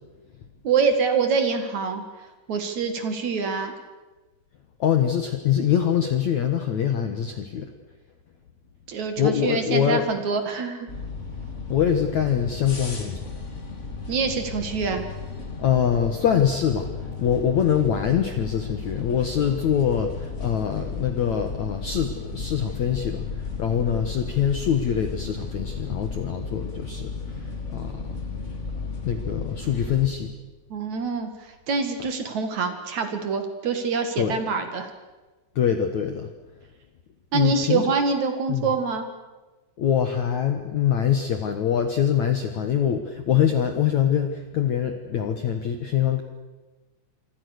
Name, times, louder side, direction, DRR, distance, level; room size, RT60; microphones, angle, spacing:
voice 1, 0.6-3.7 8.9-10.9 14.1-15.1 30.7-34.9 37.3-39.1, right 5 dB, 50° right, 7 dB, 2.6 m, -25 dB
voice 2, 4.8-7.7 9.2-10.0 11.7-13.4 15.6-16.9 17.2-28.2 29.0-30.3 34.2-34.3 35.5-36.3 37.3-37.8 38.5-38.7 39.8-46.2, left 9 dB, 75° left, 7 dB, 1.7 m, -24 dB
sound 1, 10.9-30.1, left 4 dB, 20° left, 2.2 m, -34 dB
27.5 x 25.0 x 6.6 m, 1.2 s
omnidirectional pair, 5.6 m